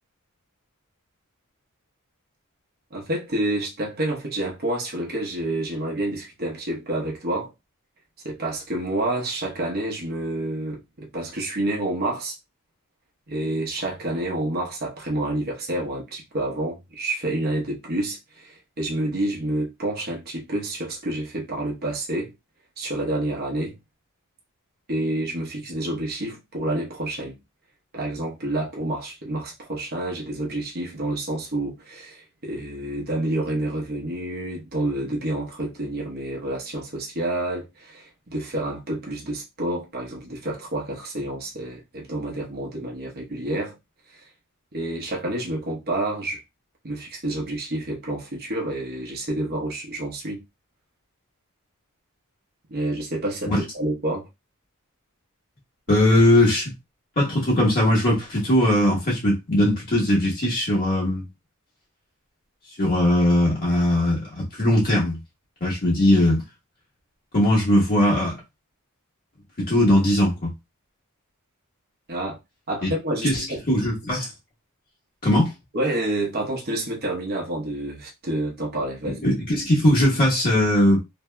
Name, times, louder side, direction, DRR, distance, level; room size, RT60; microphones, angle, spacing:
voice 1, 2.9-7.5 8.2-12.4 13.3-22.3 22.8-23.8 24.9-27.4 27.9-43.8 44.1-44.3 44.7-46.4 46.8-50.4 52.7-54.3 72.1-72.4 72.7-73.6 75.7-79.2, right 1 dB, 45° right, 0.9 m, -28 dB
voice 2, 55.9-56.7 57.2-61.2 62.8-65.2 65.6-66.4 67.3-68.4 69.6-70.5 72.8-72.9 73.2-74.3 75.2-75.5 79.2-81.0, left 1 dB, 40° left, 1.0 m, -20 dB
2.8 x 2.7 x 2.2 m
head